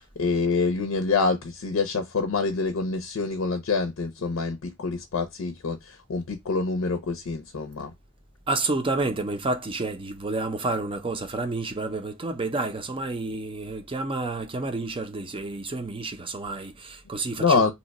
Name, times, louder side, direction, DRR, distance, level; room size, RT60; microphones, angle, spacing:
voice 1, 0.0-7.9 17.4-17.7, left 4 dB, 75° left, 0.5 m, -26 dB
voice 2, 8.5-17.7, right 2 dB, 25° right, 0.5 m, -30 dB
2.9 x 2.2 x 3.9 m
head